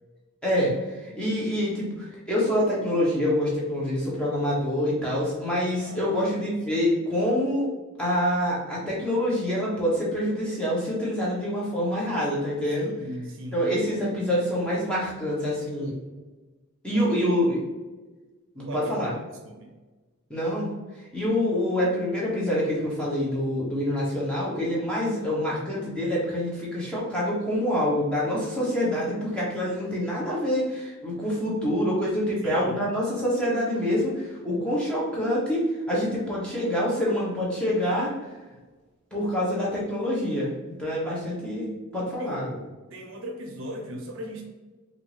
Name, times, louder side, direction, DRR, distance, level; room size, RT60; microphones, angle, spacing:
voice 1, 0.4-7.7 8.0-12.9 13.5-15.9 16.8-17.6 18.5-19.1 20.3-38.1 39.1-40.5 40.8-42.6, equal, 5° left, -6 dB, 1.1 m, -26 dB
voice 2, 5.8-6.2 12.7-13.9 16.9-17.3 18.7-18.9 19.4-19.7 32.4-32.8 38.5-38.6 42.2-42.4 42.9-44.4, equal, 60° right, 3 dB, 0.6 m, -39 dB
4.3 x 2.6 x 3.3 m, 1.2 s
head